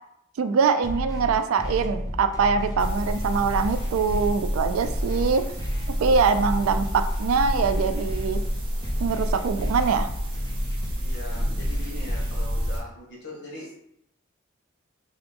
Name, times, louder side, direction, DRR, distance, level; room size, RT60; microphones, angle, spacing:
voice 1, 0.4-5.4 6.0-8.4 9.0-10.1, right 5 dB, 85° right, 9 dB, 0.3 m, -23 dB
sound 1, 0.8-12.8, equal, 20° left, 0.5 m, -32 dB
sound 2, 2.8-12.8, equal, 25° right, 0.6 m, -30 dB
voice 2, 11.0-13.8, left 1 dB, 55° left, -3 dB, 1.2 m, -41 dB
2.9 x 2.5 x 3.5 m, 0.74 s
head